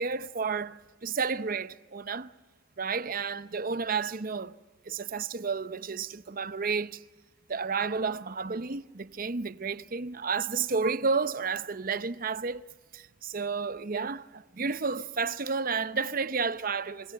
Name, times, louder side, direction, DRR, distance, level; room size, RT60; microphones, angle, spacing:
voice 1, 0.0-2.3 2.8-4.6 4.9-7.0 7.5-12.6 12.9-17.1, right 5 dB, 45° right, 0.7 m, -31 dB
27.0 x 25.5 x 7.7 m
head